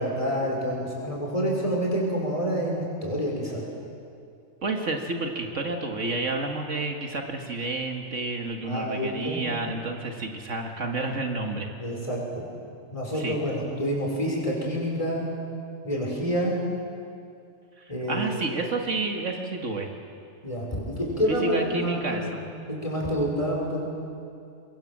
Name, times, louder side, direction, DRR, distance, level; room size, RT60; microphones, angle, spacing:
voice 1, 0.0-3.6 8.6-9.4 11.8-12.5 12.9-15.3 15.8-16.5 17.9-18.3 20.4-22.4 22.7-23.8, equal, 25° left, -3 dB, 5.7 m, -28 dB
voice 2, 4.6-11.7 13.2-13.4 18.1-19.9 21.3-22.4, right 3 dB, 65° right, 3 dB, 2.1 m, -30 dB
24.5 x 22.0 x 7.5 m, 2.4 s
omnidirectional pair, 1.4 m